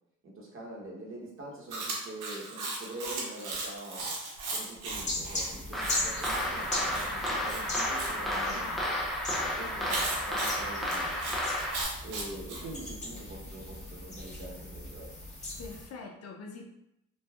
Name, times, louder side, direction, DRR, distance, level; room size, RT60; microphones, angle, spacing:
voice 1, 0.2-4.1 4.5-8.9 9.6-11.4 12.0-15.1, right 1 dB, 45° right, -3 dB, 0.9 m, -44 dB
Chewing mastication, 1.7-8.1 9.9-12.6, right 3 dB, 85° right, 0.8 m, -37 dB
sound 1, 4.9-15.9, left 2 dB, 25° left, 1.0 m, -39 dB
sound 2, 5.7-11.8, left 1 dB, ahead, 0.5 m, -32 dB
voice 2, 8.5-8.8 9.6-10.2 15.6-16.7, left 4 dB, 55° left, 2 dB, 0.5 m, -44 dB
3.3 x 2.2 x 2.3 m, 0.83 s
cardioid pair, 90°, 30 cm